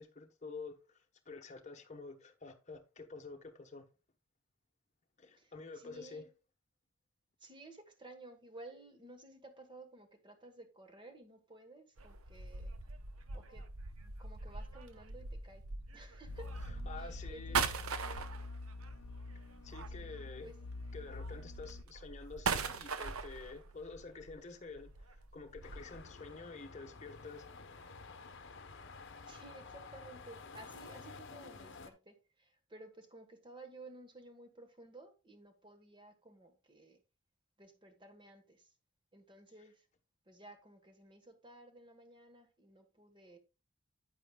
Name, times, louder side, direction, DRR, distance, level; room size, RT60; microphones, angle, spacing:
voice 1, 0.0-3.8 5.2-6.2 16.5-17.6 19.6-20.5 20.9-27.5 39.6-39.7, left 4 dB, 35° left, 1.0 m, -49 dB
voice 2, 5.3-6.3 7.4-12.8 13.3-13.7 14.0-15.6 15.9-16.5 16.9-18.2 19.9-20.6 29.3-37.0 37.6-38.7 39.1-39.9 40.2-43.4, right 2 dB, 20° right, 1.2 m, -55 dB
sound 1, 12.0-20.4 20.8-26.0, right 5 dB, 80° right, 0.8 m, -41 dB
sound 2, 16.3-21.8, left 3 dB, 80° left, 0.6 m, -46 dB
sound 3, 25.6-31.9, left 4 dB, 55° left, 0.9 m, -51 dB
9.0 x 8.9 x 2.3 m
head